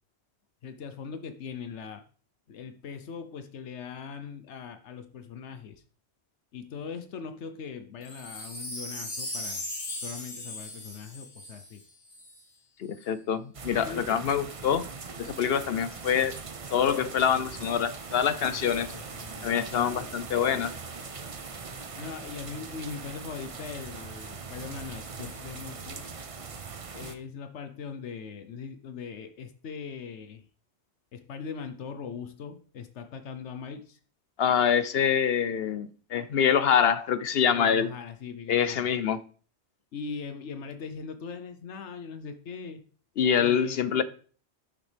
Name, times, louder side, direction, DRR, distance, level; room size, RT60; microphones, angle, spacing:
voice 1, 0.6-2.0 2.5-5.8 6.5-9.7 10.0-11.8 13.8-14.3 18.9-20.1 22.0-26.1 26.9-30.4 31.1-34.0 37.5-38.9 39.9-42.8 43.4-44.0, left 6 dB, 85° left, 1.1 m, -40 dB
Wind chime, 8.0-12.4 12.9-13.0, left 1 dB, 45° left, 1.9 m, -38 dB
voice 2, 12.8-14.9 15.2-16.4 16.7-18.9 19.4-20.7 34.4-37.9 38.5-39.2 43.2-44.0, left 8 dB, 65° left, 0.8 m, -25 dB
sound 1, 13.5-27.1, right 4 dB, 35° right, 0.7 m, -41 dB
10.5 x 6.9 x 3.3 m
omnidirectional pair, 1.2 m